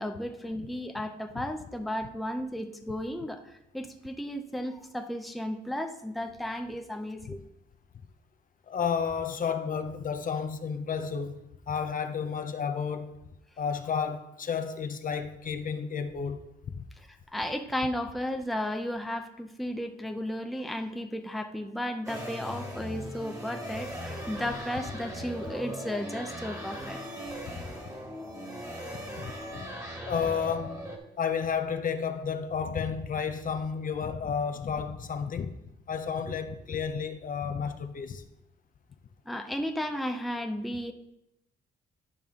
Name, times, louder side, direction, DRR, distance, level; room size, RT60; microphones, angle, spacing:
voice 1, 0.0-7.4 17.1-27.0 36.3-36.4 39.3-40.9, left 1 dB, ahead, 0.7 m, -34 dB
voice 2, 8.7-11.4 11.7-13.2 13.6-16.8 29.2-29.7 30.1-30.8 31.2-35.6 35.9-38.2, left 6 dB, 45° left, 0.7 m, -32 dB
sound 1, 22.1-31.0, equal, 15° right, 1.7 m, -39 dB
10.5 x 5.5 x 3.7 m
cardioid pair, 90°, 20 cm